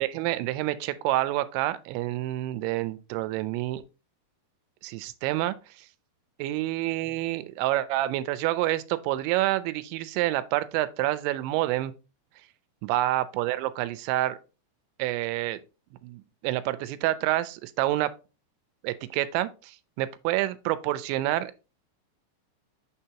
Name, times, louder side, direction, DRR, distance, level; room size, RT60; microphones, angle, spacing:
voice 1, 0.0-3.8 4.8-5.9 6.4-11.9 12.8-14.4 15.0-15.6 16.0-18.1 18.8-21.5, right 15 dB, 85° right, 2.8 m, -28 dB
6.6 x 5.5 x 2.8 m
omnidirectional pair, 5.2 m